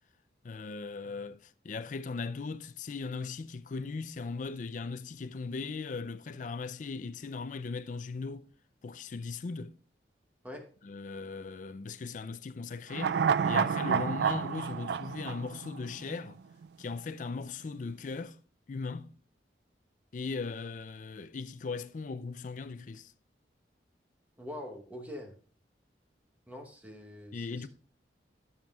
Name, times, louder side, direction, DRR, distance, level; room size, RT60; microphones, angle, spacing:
voice 1, 0.4-8.5 8.8-9.8 10.8-16.4 16.8-18.4 18.7-19.2 20.1-23.1 27.3-27.7, left 4 dB, 45° left, 0.4 m, -38 dB
sound 1, 12.9-16.3 16.6-16.7, right 7 dB, 70° right, 0.3 m, -29 dB
voice 2, 24.4-25.3 26.5-27.7, left 1 dB, 10° right, 1.0 m, -44 dB
12.0 x 7.1 x 2.4 m
head